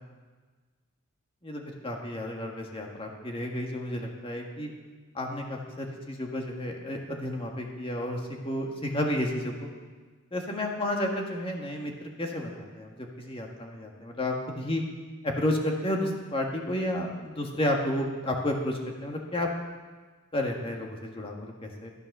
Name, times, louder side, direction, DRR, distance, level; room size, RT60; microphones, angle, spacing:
voice 1, 1.4-4.7 5.1-9.7 10.3-14.8 15.2-19.5 20.3-21.9, left 1 dB, 25° left, 1 dB, 1.7 m, -31 dB
14.0 x 9.0 x 6.7 m, 1.4 s
head